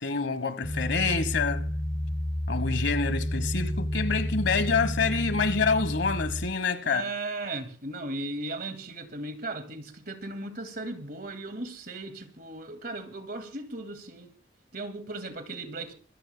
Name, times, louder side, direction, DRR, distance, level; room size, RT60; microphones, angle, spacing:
voice 1, 0.0-1.7 2.5-7.0, left 4 dB, 65° left, 1.2 m, -27 dB
sound 1, 0.6-6.5, equal, 15° left, 1.9 m, -31 dB
voice 2, 6.8-14.3 14.7-15.9, right 2 dB, 50° right, 2.1 m, -37 dB
26.5 x 13.5 x 2.2 m
head